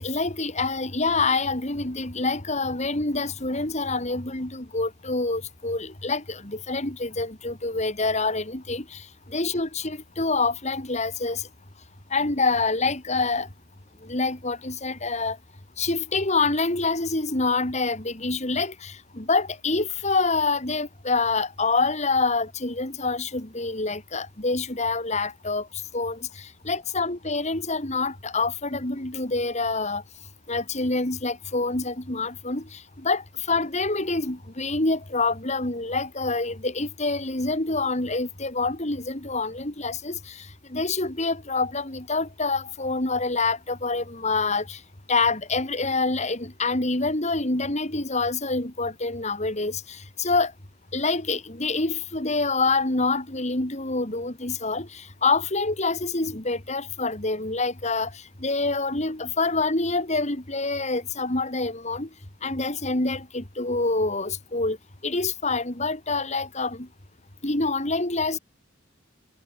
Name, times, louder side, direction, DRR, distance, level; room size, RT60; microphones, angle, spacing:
voice 1, 0.0-9.0 9.3-11.4 12.1-13.5 14.0-15.4 15.8-25.7 25.9-30.0 30.5-44.8 45.1-50.5 50.9-58.1 58.4-62.1 62.4-64.8 65.0-66.9 67.4-68.4, left 3 dB, 35° left, 2.7 m, -26 dB
head